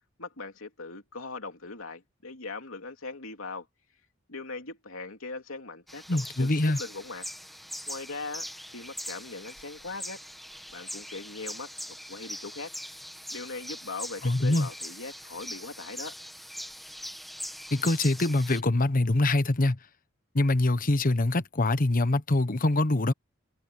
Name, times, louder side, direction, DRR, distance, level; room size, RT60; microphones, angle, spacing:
voice 1, 0.2-3.7 4.3-7.2 7.9-8.5 8.7-10.2 10.7-11.7 12.1-12.7 13.3-16.1, left 3 dB, 85° left, 2.9 m, -40 dB
sound 1, 5.9-18.6, equal, ahead, 1.7 m, -41 dB
voice 2, 6.1-6.8 14.2-14.7 17.7-19.8 20.3-23.1, left 2 dB, 45° left, 1.1 m, -24 dB
head